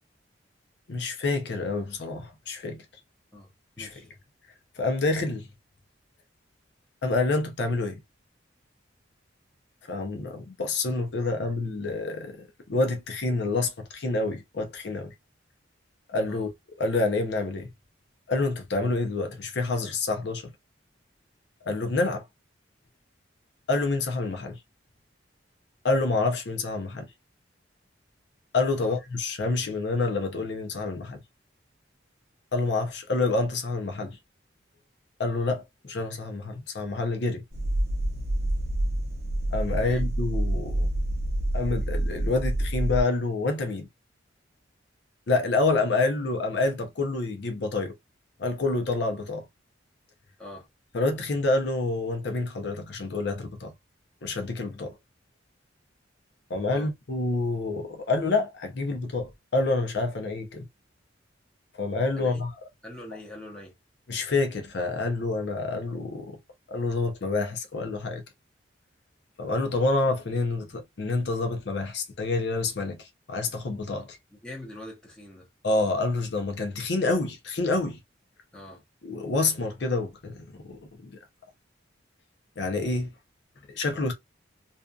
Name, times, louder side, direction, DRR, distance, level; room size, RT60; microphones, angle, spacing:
voice 1, 0.9-2.8 3.8-3.9 4.8-5.5 7.0-8.0 9.9-15.1 16.1-16.5 16.8-17.7 18.3-20.5 21.7-22.2 23.7-24.6 25.8-27.1 28.5-31.2 32.5-34.2 35.2-37.4 39.5-40.9 41.5-43.9 45.3-47.9 48.4-49.5 50.9-53.7 54.2-55.0 56.5-60.6 61.8-62.5 64.1-66.4 66.7-68.2 69.4-74.2 75.6-78.0 79.0-81.2 82.6-83.1 83.7-84.1, left 3 dB, 60° left, 0.6 m, -28 dB
voice 2, 3.8-4.1 11.2-11.5 16.3-16.5 28.8-29.0 39.8-40.0 50.4-50.7 56.7-56.9 62.2-62.5 62.8-63.7 74.0-75.5 78.5-78.8, left 1 dB, 5° left, 0.8 m, -44 dB
sound 1, 37.5-43.0, right 1 dB, 55° right, 0.7 m, -27 dB
2.6 x 2.3 x 2.3 m
head